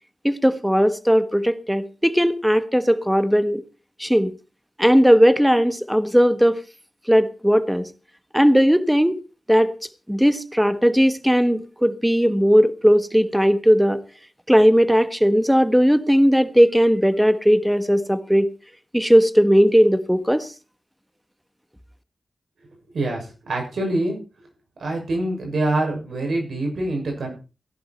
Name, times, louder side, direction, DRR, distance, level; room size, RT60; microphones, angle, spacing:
voice 1, 0.2-3.6 4.0-4.3 4.8-6.6 7.1-7.9 8.3-9.2 9.5-9.7 10.1-14.0 14.5-18.5 18.9-20.5, equal, 5° right, 1.4 m, -17 dB
voice 2, 22.9-24.2 24.8-27.3, right 2 dB, 80° right, 6.8 m, -25 dB
16.5 x 11.0 x 4.5 m
wide cardioid pair, 80°, 0 cm